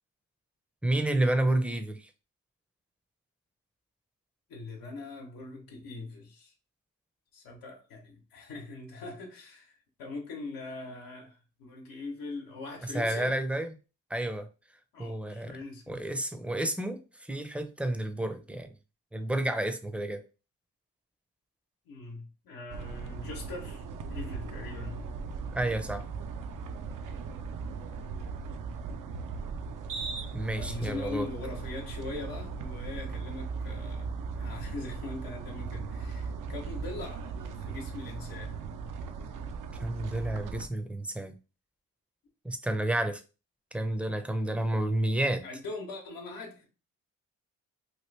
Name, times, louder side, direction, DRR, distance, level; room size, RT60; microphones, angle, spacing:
voice 1, 0.8-2.1 12.9-13.7 14.1-14.5 15.0-15.5 15.9-18.7 19.1-20.2 25.5-26.0 30.3-31.3 39.8-41.4 42.4-43.2 43.7-45.4, right 1 dB, 5° right, 0.5 m, -30 dB
voice 2, 4.5-6.5 7.3-13.4 14.9-16.0 21.8-23.8 24.1-25.1 28.2-28.3 30.6-34.1 34.4-38.6 45.4-46.7, left 3 dB, 85° left, 0.9 m, -41 dB
sound 1, 22.7-40.7, right 5 dB, 65° right, 0.6 m, -38 dB
3.0 x 2.5 x 3.2 m
supercardioid pair, 60°, 34 cm